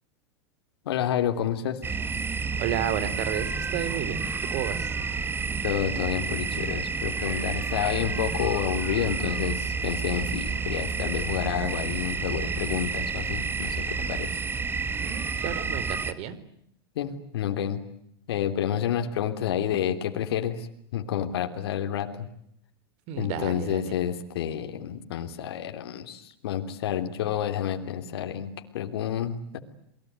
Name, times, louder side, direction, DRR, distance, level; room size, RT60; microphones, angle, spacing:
voice 1, 0.8-1.8 5.6-14.4 16.9-17.8 18.3-22.3 23.2-29.6, left 9 dB, 75° left, 5 dB, 3.2 m, -29 dB
sound 1, 1.8-16.1, right 4 dB, 15° right, 1.8 m, -30 dB
voice 2, 2.6-4.2 4.5-4.9 15.0-16.4 23.1-23.9, right 10 dB, 50° right, 15 dB, 4.0 m, -32 dB
28.5 x 21.5 x 9.5 m, 0.73 s
hypercardioid pair, 110°, 13 cm